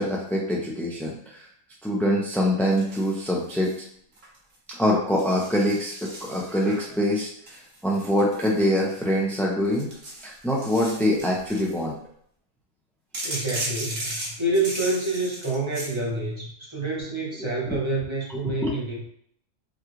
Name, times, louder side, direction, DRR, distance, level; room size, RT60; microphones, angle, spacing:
voice 1, 0.0-1.5 1.8-3.7 4.7-9.9 10.2-11.9 17.4-17.7 18.3-18.7, equal, ahead, -3 dB, 0.4 m, -25 dB
sound 1, 2.7-3.8 4.1-4.5 5.2-6.8 7.5-9.2 9.7-11.8 13.1-16.0, right 1 dB, 55° right, 1.4 m, -36 dB
voice 2, 13.2-19.0, right 2 dB, 25° right, -4 dB, 1.0 m, -28 dB
5.3 x 2.4 x 3.0 m, 0.66 s
omnidirectional pair, 1.3 m